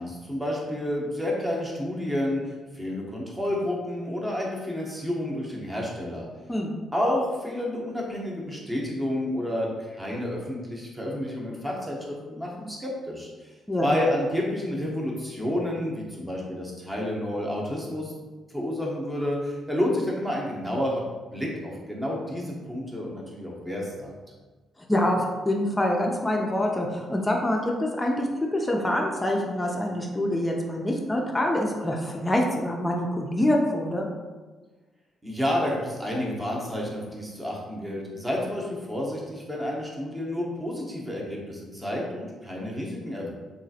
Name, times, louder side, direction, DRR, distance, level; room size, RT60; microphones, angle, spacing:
voice 1, 0.0-6.3 6.9-13.5 13.8-18.1 18.5-21.0 21.3-24.1 35.2-43.3, left 1 dB, 10° right, -2 dB, 0.7 m, -30 dB
voice 2, 24.9-34.1, left 1 dB, 15° left, 0 dB, 0.4 m, -25 dB
3.0 x 2.4 x 2.7 m, 1.3 s
cardioid pair, 90°, 0 cm